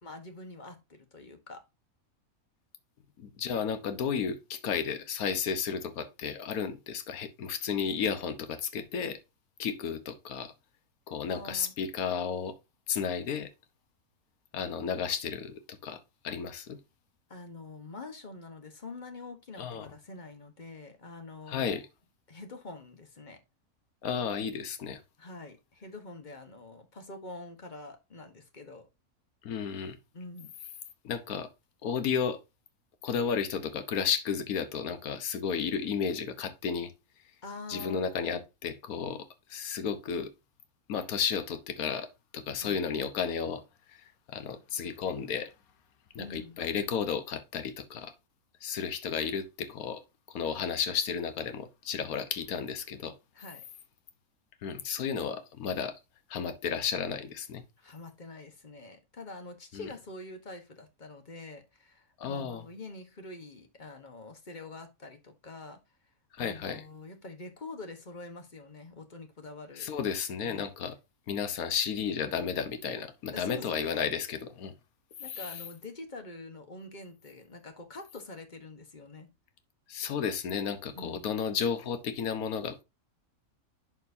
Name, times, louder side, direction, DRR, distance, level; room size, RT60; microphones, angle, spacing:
voice 1, 0.0-1.6 11.3-11.7 17.3-21.7 22.3-23.4 25.2-28.8 30.1-30.5 37.4-38.4 42.6-42.8 46.2-46.6 53.3-53.6 57.8-65.8 66.4-69.9 70.4-70.7 73.3-74.1 75.2-79.3 80.9-81.3, left 2 dB, 35° left, 1.2 m, -45 dB
voice 2, 3.2-9.2 9.6-10.5 11.1-12.6 12.9-13.5 14.5-16.8 19.6-19.9 21.5-21.8 24.0-25.0 29.4-30.0 31.0-31.5 31.8-32.4 33.0-36.9 37.7-40.3 40.9-43.6 44.3-45.5 46.1-48.1 48.6-50.0 50.3-53.1 54.6-55.9 56.3-57.6 59.7-59.9 62.2-62.6 66.3-66.8 69.8-71.0 71.3-74.7 75.3-75.4 79.9-82.8, left 7 dB, 80° left, 1.4 m, -33 dB
11.0 x 4.4 x 2.7 m
omnidirectional pair, 1.5 m